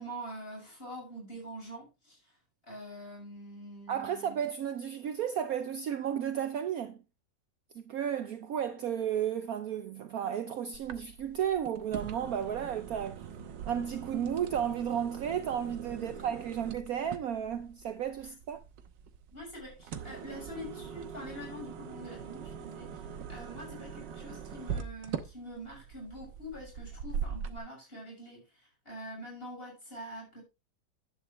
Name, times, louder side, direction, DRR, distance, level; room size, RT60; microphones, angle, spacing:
voice 1, 0.0-2.2 2.7-4.4 16.0-16.3 19.3-28.4 28.8-30.4, equal, 30° left, 6.8 m, -45 dB
voice 2, 3.9-7.0 7.7-13.3 13.7-18.6, right 9 dB, 65° right, 1.1 m, -33 dB
sound 1, 10.7-27.6, right 7 dB, 85° right, 1.6 m, -42 dB
11.0 x 8.4 x 3.1 m
omnidirectional pair, 1.9 m